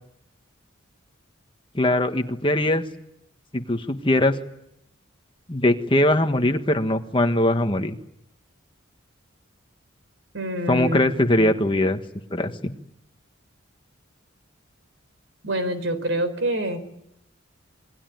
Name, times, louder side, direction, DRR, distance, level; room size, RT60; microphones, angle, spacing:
voice 1, 1.7-2.8 3.5-4.3 5.5-8.0 10.7-12.0 12.3-12.7, left 1 dB, 25° left, 6 dB, 1.5 m, -21 dB
voice 2, 10.3-11.5 15.4-16.8, right 1 dB, 70° right, 11 dB, 4.3 m, -27 dB
27.5 x 22.0 x 9.4 m, 0.80 s
head